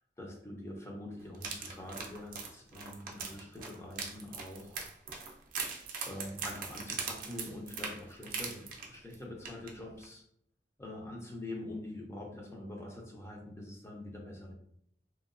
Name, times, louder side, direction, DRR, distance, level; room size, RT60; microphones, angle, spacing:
voice 1, 0.2-4.9 6.0-10.2 10.8-14.5, left 1 dB, 15° left, 0 dB, 0.5 m, -44 dB
Sonic Snap Sint-Laurens, 1.3-9.1 9.5-9.7 10.0-10.1, right 5 dB, 50° right, 0.5 m, -40 dB
2.9 x 2.2 x 2.5 m, 0.71 s
head